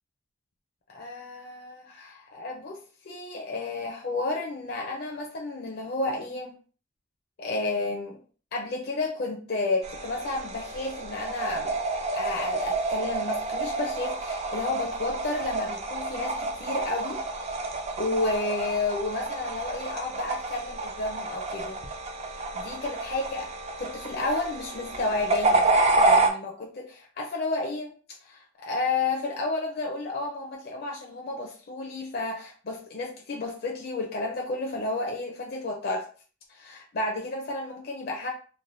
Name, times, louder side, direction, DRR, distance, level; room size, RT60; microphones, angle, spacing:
voice 1, 0.9-6.5 7.4-8.2 8.5-11.8 12.1-17.2 18.0-21.8 22.3-23.5 23.8-25.7 26.0-27.9 28.2-36.1 36.5-38.3, left 2 dB, 55° left, -1 dB, 0.5 m, -31 dB
sound 1, 9.8-26.3, right 3 dB, 35° right, 0.4 m, -29 dB
3.3 x 2.2 x 2.5 m, 0.40 s
head